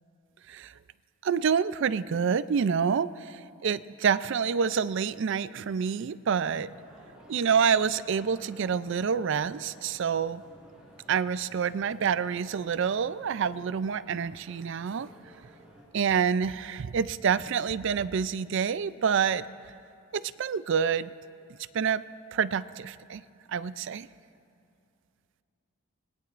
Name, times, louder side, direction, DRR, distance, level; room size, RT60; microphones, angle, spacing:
voice 1, 1.2-6.7 7.3-10.4 11.1-15.1 15.9-19.4 20.1-21.1 21.7-22.0 22.3-23.2 23.5-24.1, right 6 dB, 55° right, 16 dB, 0.3 m, -27 dB
sound 1, 6.6-15.8, equal, 5° right, 4.3 m, -54 dB
26.0 x 20.5 x 2.5 m, 2.5 s
head